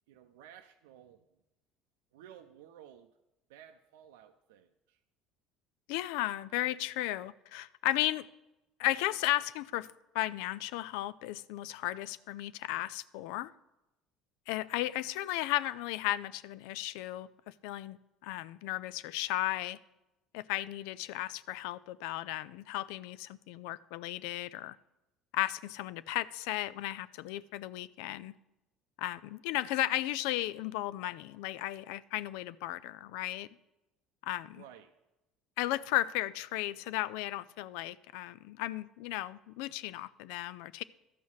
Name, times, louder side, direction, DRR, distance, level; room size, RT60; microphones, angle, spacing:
voice 1, 0.1-1.4 2.1-3.1 3.5-5.0 34.4-35.0, right 10 dB, 80° right, 5 dB, 0.5 m, -55 dB
voice 2, 5.9-8.3 8.8-13.5 14.5-18.0 18.2-19.8 20.3-24.8 25.3-28.3 29.0-33.5 34.2-34.6 35.6-40.8, left 15 dB, 75° left, 18 dB, 0.3 m, -35 dB
13.0 x 5.5 x 6.3 m, 0.96 s
hypercardioid pair, 70°, 0 cm